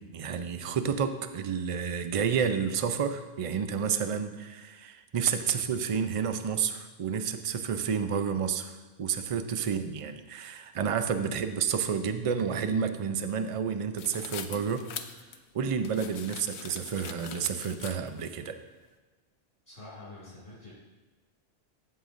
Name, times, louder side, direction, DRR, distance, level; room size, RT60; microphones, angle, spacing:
voice 1, 0.0-14.9 15.5-18.6, right 7 dB, 45° right, 9 dB, 0.5 m, -30 dB
sound 1, 14.0-18.3, left 8 dB, 85° left, 0.9 m, -42 dB
voice 2, 19.7-20.7, left 2 dB, 50° left, -9 dB, 2.4 m, -47 dB
13.5 x 7.6 x 2.6 m, 1.2 s
omnidirectional pair, 1.1 m